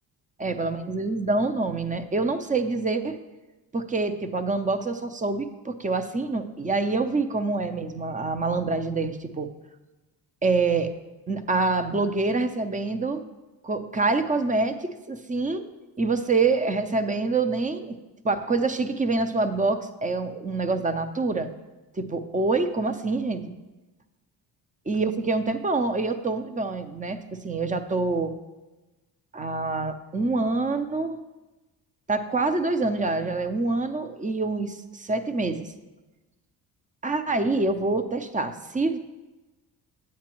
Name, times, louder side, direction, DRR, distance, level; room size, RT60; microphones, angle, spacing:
voice 1, 0.4-3.2 3.7-9.5 10.4-10.9 11.3-13.2 13.6-15.7 16.0-18.0 18.2-21.5 21.9-23.5 24.9-28.4 29.3-31.2 32.1-35.7 37.0-39.0, right 3 dB, 20° right, 10 dB, 0.6 m, -26 dB
9.6 x 8.2 x 3.0 m, 1.1 s
cardioid pair, 80°, 42 cm